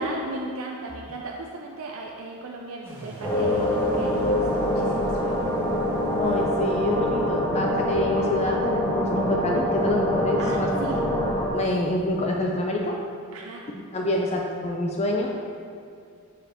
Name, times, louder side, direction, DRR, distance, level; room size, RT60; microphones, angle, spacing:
voice 1, 0.0-5.5 10.4-11.0 13.3-13.6, right 3 dB, 75° right, 0 dB, 0.5 m, -36 dB
sound 1, 2.9-7.9, equal, 10° right, 1.0 m, -41 dB
sound 2, 3.2-11.5, left 1 dB, 10° left, 1.1 m, -25 dB
voice 2, 6.2-10.7 11.5-13.0 13.9-15.3, left 1 dB, 30° left, 0 dB, 0.5 m, -26 dB
6.7 x 5.0 x 4.3 m, 2.4 s
head